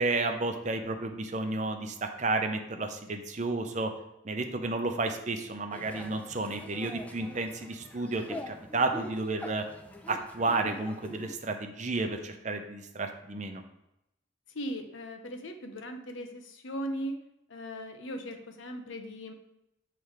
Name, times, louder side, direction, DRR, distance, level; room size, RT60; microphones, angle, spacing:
voice 1, 0.0-3.9 4.2-9.6 10.1-13.6, right 3 dB, 40° right, 5 dB, 0.6 m, -32 dB
sound 1, 5.7-11.3, left 1 dB, 5° left, 0.4 m, -44 dB
voice 2, 14.5-17.2 17.5-19.3, equal, 80° left, 6 dB, 0.8 m, -38 dB
7.4 x 3.4 x 4.8 m, 0.85 s
head